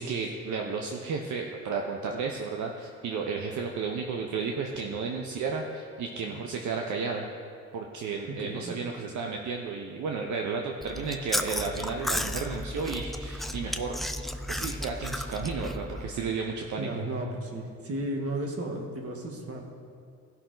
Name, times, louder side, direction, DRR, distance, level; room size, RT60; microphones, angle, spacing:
voice 1, 0.0-7.3 7.7-14.0 14.5-16.9, right 5 dB, 70° right, 2 dB, 0.9 m, -33 dB
voice 2, 8.3-8.7 16.8-19.6, right 1 dB, 50° right, 2 dB, 1.6 m, -34 dB
Chewing mastication, 10.8-16.1, left 1 dB, ahead, 0.5 m, -34 dB
16.0 x 5.7 x 3.9 m, 2.2 s
cardioid pair, 90°, 30 cm